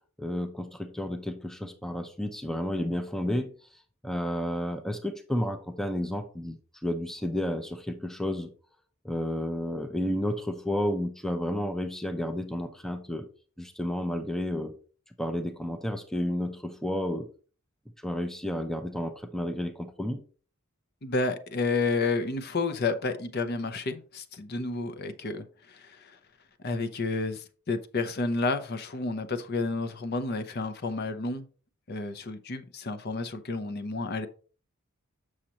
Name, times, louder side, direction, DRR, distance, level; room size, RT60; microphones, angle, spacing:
voice 1, 0.2-8.5 9.0-13.3 13.6-14.8 15.2-17.3 18.0-20.2, left 1 dB, ahead, 0.5 m, -31 dB
voice 2, 21.0-26.1 26.6-31.5 31.9-34.3, left 3 dB, 50° left, 0.7 m, -31 dB
7.3 x 6.4 x 2.9 m
head